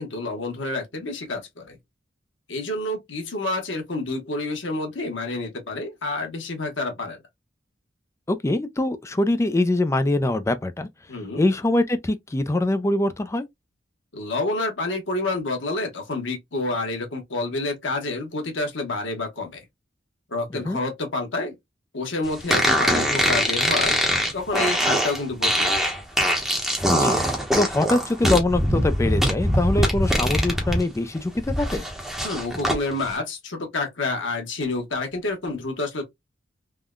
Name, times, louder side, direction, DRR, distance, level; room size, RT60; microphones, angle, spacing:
voice 1, 0.0-1.8 2.5-7.2 11.1-11.4 14.1-19.6 20.3-21.5 21.9-23.9 24.3-25.9 32.2-36.0, left 2 dB, 90° left, 1.1 m, -28 dB
voice 2, 8.3-10.9 11.4-13.5 20.5-20.8 26.9-27.2 27.6-31.8, left 2 dB, 15° left, 0.4 m, -23 dB
sound 1, 22.5-30.8 31.2-32.8, equal, ahead, 0.8 m, -22 dB
3.5 x 2.2 x 2.2 m
head